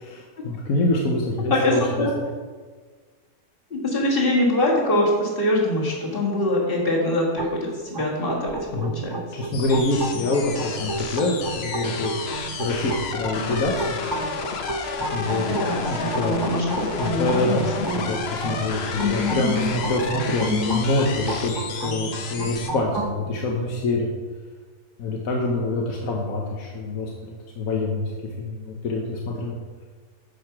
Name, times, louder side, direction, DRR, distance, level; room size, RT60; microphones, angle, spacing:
voice 1, 0.0-2.1 8.7-8.9 9.3-12.1 12.6-14.0 15.1-15.5 15.8-16.5 17.0-24.1 25.0-28.1 28.4-29.6, left 2 dB, 70° left, -1 dB, 1.4 m, -26 dB
voice 2, 1.5-2.1 3.7-9.2 15.5-18.1 19.0-19.6 20.4-20.8, left 1 dB, 40° left, -3 dB, 2.0 m, -24 dB
sound 1, 7.4-23.1, right 3 dB, 40° right, 0.3 m, -33 dB
sound 2, 9.5-22.7, left 5 dB, 55° left, 0.9 m, -32 dB
9.6 x 4.8 x 5.9 m, 1.5 s
omnidirectional pair, 1.5 m